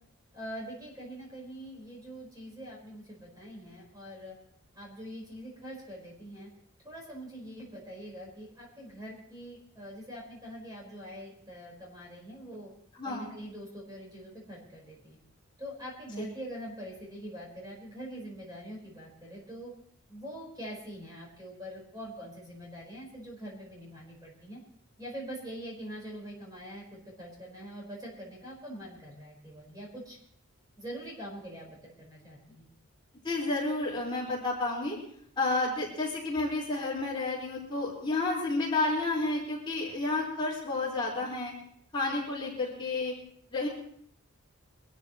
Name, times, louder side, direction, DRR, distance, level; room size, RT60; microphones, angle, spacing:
voice 1, 0.3-4.3 4.7-6.5 6.8-12.7 13.0-15.2 15.6-19.7 20.1-24.6 25.0-30.2 30.8-32.6, equal, 15° right, -2 dB, 4.8 m, -44 dB
voice 2, 13.0-13.3 16.2-16.3 33.2-35.0 35.4-41.5 41.9-43.1 43.5-43.7, left 2 dB, 20° left, -4 dB, 4.7 m, -31 dB
24.0 x 13.5 x 3.1 m, 0.65 s
head